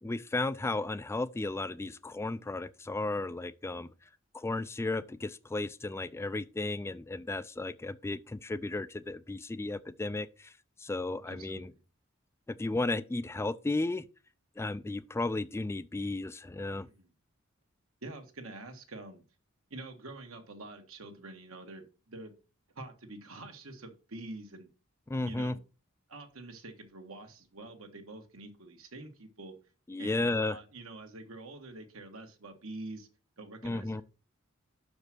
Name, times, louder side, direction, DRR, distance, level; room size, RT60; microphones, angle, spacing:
voice 1, 0.0-3.9 4.3-10.5 10.8-11.7 12.5-14.0 14.6-16.9 25.1-25.5 29.9-30.6 33.6-34.0, left 2 dB, 15° left, 0.3 m, -34 dB
voice 2, 11.3-11.8 16.8-17.1 18.0-19.2 19.7-22.3 22.7-24.7 25.2-25.6 26.1-29.5 30.0-33.1 33.4-34.0, right 2 dB, 80° right, 1.6 m, -46 dB
6.1 x 5.2 x 6.0 m
head